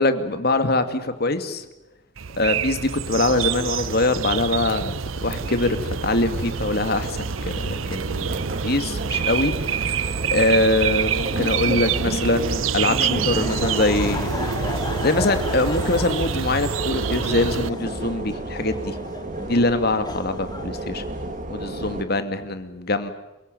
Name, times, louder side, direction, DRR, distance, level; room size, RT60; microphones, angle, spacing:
voice 1, 0.0-1.7 2.4-4.9 5.2-9.7 10.3-14.4 15.0-19.0 19.4-21.0 21.5-23.1, left 2 dB, 50° left, 9 dB, 2.3 m, -23 dB
sound 1, 2.2-17.7, right 6 dB, 90° right, 0.8 m, -27 dB
sound 2, 5.3-22.0, right 1 dB, 40° right, 2.2 m, -33 dB
Laughter, 12.9-21.4, left 2 dB, 20° left, 2.2 m, -36 dB
28.0 x 17.5 x 9.2 m, 1.0 s
head